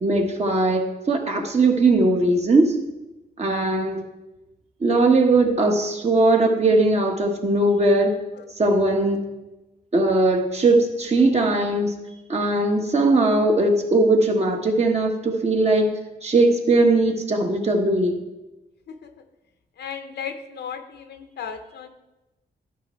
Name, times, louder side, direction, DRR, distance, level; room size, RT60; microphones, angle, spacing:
voice 1, 0.0-2.8 3.4-4.0 4.8-8.2 8.6-9.2 9.9-11.9 12.3-15.9 16.2-18.2, right 2 dB, 40° right, 2 dB, 1.4 m, -19 dB
voice 2, 19.8-21.9, left 7 dB, 80° left, 7 dB, 0.8 m, -35 dB
12.0 x 5.5 x 4.5 m, 1.0 s
cardioid pair, 100°, 17 cm